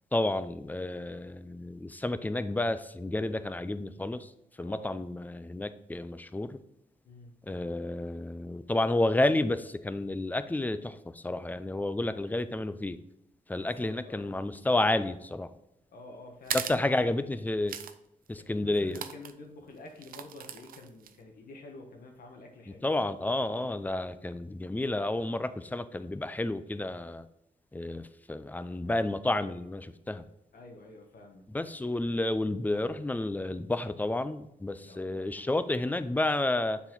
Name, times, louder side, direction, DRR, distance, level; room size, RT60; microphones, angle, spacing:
voice 1, 0.1-4.3 4.6-6.6 7.5-13.0 13.5-15.5 16.5-17.8 18.3-19.0 22.8-27.2 27.7-30.2 31.5-36.8, left 2 dB, 10° left, 12 dB, 0.4 m, -30 dB
voice 2, 4.6-5.0 7.0-7.3 13.5-14.3 15.9-16.7 16.9-17.3 18.4-22.8 30.5-31.5 34.8-35.7, left 2 dB, 80° left, 2 dB, 1.2 m, -48 dB
sound 1, 16.4-16.8 17.7-17.9 18.3-18.4 18.9-19.3 20.0-21.2, right 8 dB, 80° right, 0.5 m, -37 dB
7.0 x 4.2 x 3.8 m, 0.84 s
cardioid pair, 85°, 15 cm